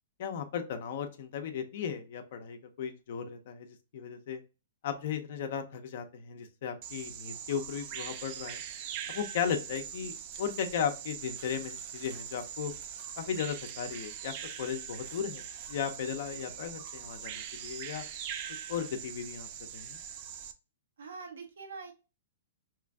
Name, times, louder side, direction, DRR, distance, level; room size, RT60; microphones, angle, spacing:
voice 1, 0.2-4.4 4.8-8.6 9.1-12.7 13.2-18.0 18.7-19.5 19.7-20.0, left 7 dB, 55° left, 6 dB, 0.6 m, -36 dB
Bird vocalization bird call bird song, 6.8-20.5, right 9 dB, 40° right, 0.4 m, -42 dB
voice 2, 21.0-21.9, right 4 dB, 85° right, 3 dB, 0.9 m, -44 dB
3.1 x 2.5 x 3.3 m, 0.31 s
hypercardioid pair, 150°, 0 cm